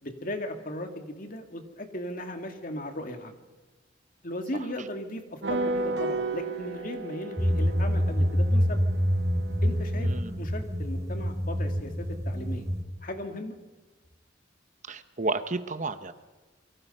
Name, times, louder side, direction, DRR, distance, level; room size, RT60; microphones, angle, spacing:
voice 1, 0.0-3.4 4.2-8.8 9.6-10.1 10.4-12.7 13.0-13.6, left 1 dB, 45° left, 5 dB, 2.5 m, -37 dB
sound 1, 5.4-10.1, right 2 dB, 60° right, 1.2 m, -34 dB
sound 2, 7.4-12.8, equal, 15° right, 2.9 m, -26 dB
voice 2, 10.0-10.4 14.9-16.1, right 3 dB, 40° right, 10 dB, 1.0 m, -32 dB
27.5 x 23.5 x 5.6 m, 1.2 s
head